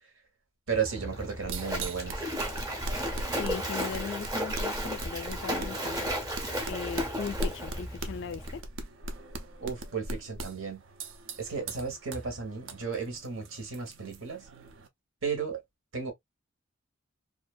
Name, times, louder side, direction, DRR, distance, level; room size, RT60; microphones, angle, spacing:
Splash splatter, 0.7-8.6, equal, 20° right, 0.7 m, -34 dB
voice 1, 0.7-2.2 9.6-10.8 11.4-14.5 15.2-15.6 15.9-16.1, right 6 dB, 80° right, 1.0 m, -34 dB
sound 1, 1.1-14.9, right 2 dB, 65° right, 0.5 m, -40 dB
voice 2, 3.3-6.1 6.7-8.6, left 6 dB, 55° left, 0.3 m, -38 dB
2.6 x 2.4 x 2.2 m
head